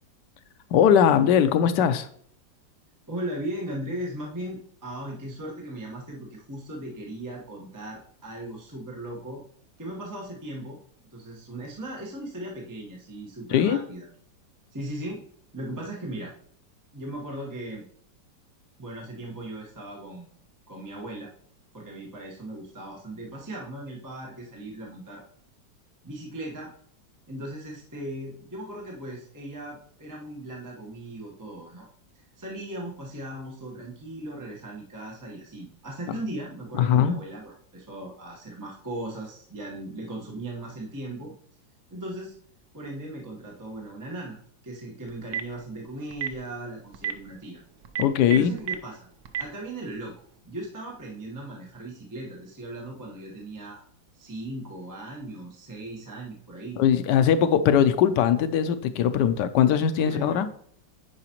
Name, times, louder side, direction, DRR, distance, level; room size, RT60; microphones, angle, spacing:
voice 1, 0.7-2.1 13.5-13.8 36.7-37.2 48.0-48.5 56.8-60.5, left 8 dB, 75° left, 1.1 m, -20 dB
voice 2, 3.1-9.4 9.8-10.8 11.1-14.1 14.7-15.2 15.5-16.3 16.9-17.8 18.8-20.3 20.7-21.3 21.7-25.2 26.0-26.7 27.3-31.9 32.4-41.3 41.9-42.3 42.7-44.4 44.6-47.6 48.2-49.1 49.4-50.1 50.4-53.8 54.1-56.8 60.0-60.4, right 1 dB, 15° right, 1.0 m, -37 dB
Telephone, 45.1-45.5 46.1-46.3 46.9-47.1 47.8-48.8 49.3-49.4, right 9 dB, 65° right, 0.7 m, -29 dB
9.7 x 4.9 x 2.9 m
omnidirectional pair, 2.0 m